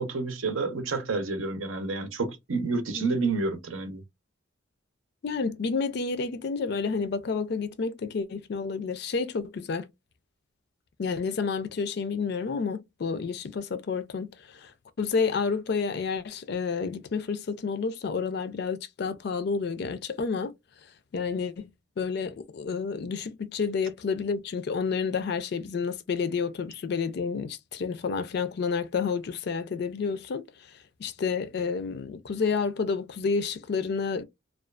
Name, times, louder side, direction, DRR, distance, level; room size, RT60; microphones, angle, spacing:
voice 1, 0.0-4.0, right 3 dB, 85° right, 0.6 m, -29 dB
voice 2, 5.2-9.9 11.0-14.7 15.0-20.5 21.1-21.7 22.0-30.4 31.0-34.2, left 5 dB, 55° left, 0.4 m, -30 dB
2.4 x 2.3 x 2.2 m
head